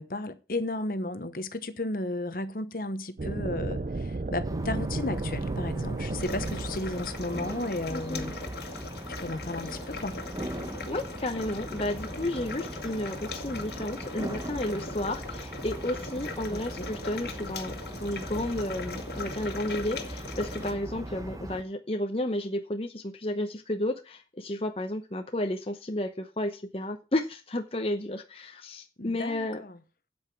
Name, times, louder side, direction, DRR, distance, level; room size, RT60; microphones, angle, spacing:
voice 1, 0.0-8.5 9.2-10.2 16.5-16.9 29.0-29.8, left 2 dB, 50° left, 1.0 m, -34 dB
sound 1, 3.2-8.0, right 2 dB, 45° right, 0.5 m, -33 dB
sound 2, 4.4-21.6, right 1 dB, 20° right, 1.0 m, -40 dB
sound 3, 6.2-20.7, left 3 dB, 70° left, 1.8 m, -40 dB
voice 2, 7.9-8.2 10.9-29.6, left 1 dB, 35° left, 0.9 m, -32 dB
8.3 x 8.1 x 5.9 m
head